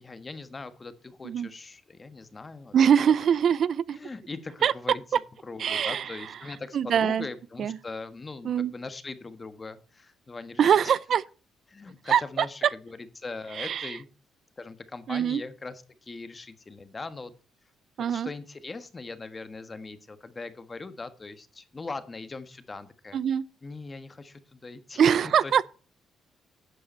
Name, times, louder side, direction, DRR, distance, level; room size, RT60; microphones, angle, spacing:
voice 1, 0.0-2.7 3.9-5.0 5.4-10.9 11.7-14.1 14.6-17.3 18.0-23.2 23.6-25.0 25.4-25.5, left 3 dB, 30° left, 1.4 m, -40 dB
voice 2, 2.7-4.0 4.6-4.7 5.6-6.3 6.7-7.3 7.6-7.8 8.4-8.7 10.6-11.2 12.1-12.5 13.5-14.0 15.1-15.4 18.0-18.3 23.1-23.4 25.0-25.7, right 8 dB, 60° right, 0.5 m, -23 dB
11.5 x 7.8 x 4.4 m
cardioid pair, 90°, 0 cm